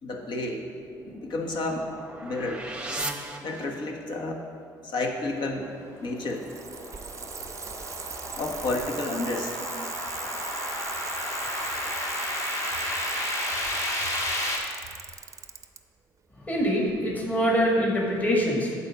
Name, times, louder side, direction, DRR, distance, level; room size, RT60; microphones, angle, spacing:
voice 1, 0.0-0.6 1.0-1.9 2.2-2.7 3.4-4.4 4.8-5.7 6.0-6.4 8.4-9.5, left 2 dB, 60° left, 2 dB, 1.2 m, -31 dB
sound 1, 0.8-4.2, right 2 dB, 10° right, 0.9 m, -38 dB
sound 2, 5.5-14.6, left 1 dB, 35° left, 1.7 m, -32 dB
Bicycle, 6.2-15.8 16.9-17.0, right 6 dB, 35° right, 0.6 m, -39 dB
voice 2, 16.3-18.8, equal, 20° left, -2 dB, 1.7 m, -24 dB
8.7 x 4.3 x 7.2 m, 2.3 s
supercardioid pair, 75°, 9 cm